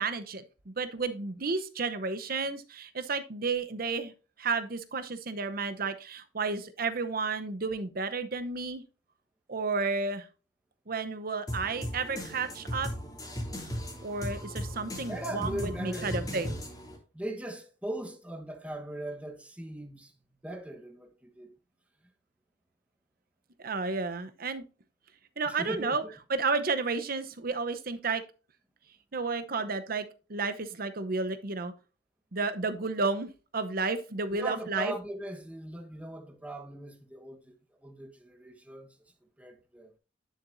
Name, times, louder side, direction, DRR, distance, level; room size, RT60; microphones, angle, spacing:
voice 1, 0.0-4.1 4.4-8.8 9.5-10.3 10.9-12.9 14.0-16.6 23.6-24.6 25.4-26.0 26.3-28.2 29.1-31.7 32.3-34.9, right 4 dB, 55° right, 0.9 m, -32 dB
sound 1, 11.5-17.0, equal, 20° left, 2.8 m, -37 dB
voice 2, 15.0-16.6 17.1-20.1 20.4-21.5 25.5-26.1 34.3-37.5 37.8-39.0 39.4-39.9, right 1 dB, 10° right, 1.2 m, -39 dB
10.0 x 7.0 x 2.7 m
head